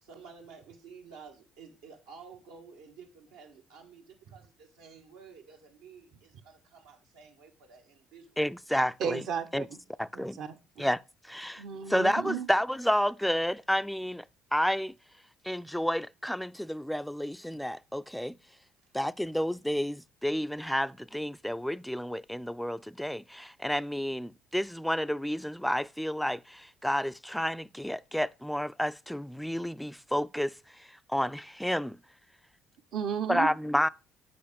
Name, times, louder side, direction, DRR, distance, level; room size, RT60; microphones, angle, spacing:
voice 1, 0.0-8.4, right 5 dB, 90° right, 1.5 m, -52 dB
voice 2, 8.4-9.2 9.5-9.6 10.0-10.4 10.8-11.6 11.9-14.2 14.5-14.9 15.4-18.4 18.9-32.0 33.3-33.9, equal, 5° left, 0.3 m, -30 dB
voice 3, 9.0-9.7 10.1-10.9 11.6-12.5 32.9-33.5, right 8 dB, 65° right, 0.8 m, -34 dB
6.9 x 4.9 x 5.1 m
supercardioid pair, 65°, 0 cm